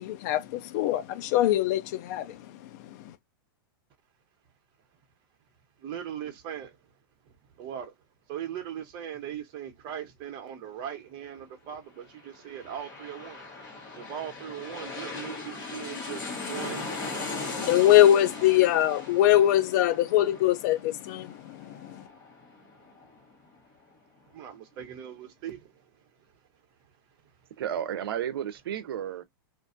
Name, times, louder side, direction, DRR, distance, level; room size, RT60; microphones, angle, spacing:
voice 1, 0.0-2.4 17.6-22.0, left 13 dB, 50° left, 0.4 m, -23 dB
voice 2, 5.8-6.8 7.3-7.9 8.3-16.9 24.3-25.7, right 9 dB, 40° right, 0.8 m, -39 dB
sound 1, 12.2-23.5 23.9-24.0, left 3 dB, 30° left, 1.1 m, -39 dB
voice 3, 27.6-29.2, right 10 dB, 80° right, 0.5 m, -32 dB
2.5 x 2.2 x 2.5 m
hypercardioid pair, 140°, 12 cm